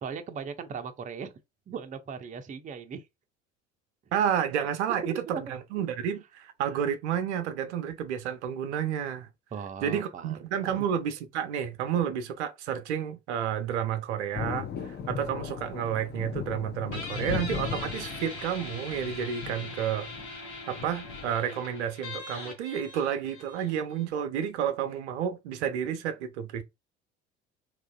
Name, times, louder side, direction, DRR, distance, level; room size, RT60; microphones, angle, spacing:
voice 1, 0.0-1.3 1.7-3.0 5.0-5.4 9.5-10.4 10.7-10.8, right 6 dB, 25° right, 0.5 m, -38 dB
voice 2, 4.1-9.3 9.8-26.6, right 9 dB, 75° right, 0.5 m, -31 dB
Thunder, 14.4-21.3, left 7 dB, 30° left, 0.5 m, -37 dB
Guitar, 16.9-24.1, left 3 dB, 75° left, 1.3 m, -41 dB
3.0 x 2.4 x 2.3 m
figure-of-eight pair, 60°, 35 cm